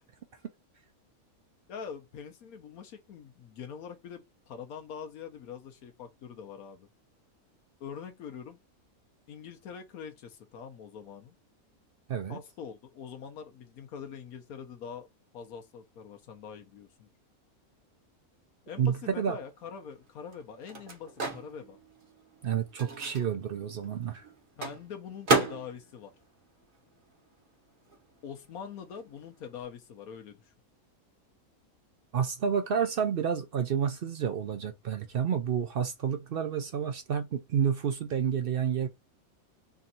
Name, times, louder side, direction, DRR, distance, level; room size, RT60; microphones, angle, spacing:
voice 1, 1.7-6.9 7.8-8.6 9.3-11.4 12.3-15.1 15.3-17.1 18.7-21.8 24.6-26.1 28.2-30.5, left 7 dB, 80° left, 1.2 m, -44 dB
voice 2, 18.8-19.4 22.4-24.2 32.1-38.9, right 7 dB, 65° right, 0.5 m, -30 dB
Microwave oven, 19.5-27.5 27.7-29.6, right 3 dB, 40° right, 1.1 m, -35 dB
3.5 x 2.5 x 4.1 m
omnidirectional pair, 1.5 m